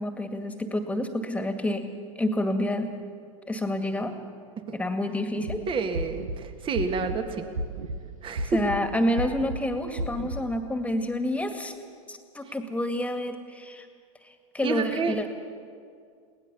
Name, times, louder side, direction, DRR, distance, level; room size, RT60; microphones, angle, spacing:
voice 1, 0.0-1.8 2.2-2.9 3.5-4.2 4.7-5.6 8.4-11.7 12.1-13.9 14.2-15.3, left 1 dB, 10° left, 7 dB, 2.0 m, -28 dB
sound 1, 5.4-5.6 5.9-6.4 6.8-7.2 7.6-8.0 8.4-8.8 9.2-9.6 10.0-10.4, right 1 dB, 85° right, 1.4 m, -32 dB
voice 2, 5.7-7.5 8.2-8.6 14.6-15.3, right 5 dB, 30° right, 7 dB, 1.8 m, -29 dB
22.5 x 18.0 x 7.0 m, 2.2 s
hypercardioid pair, 90°, 17 cm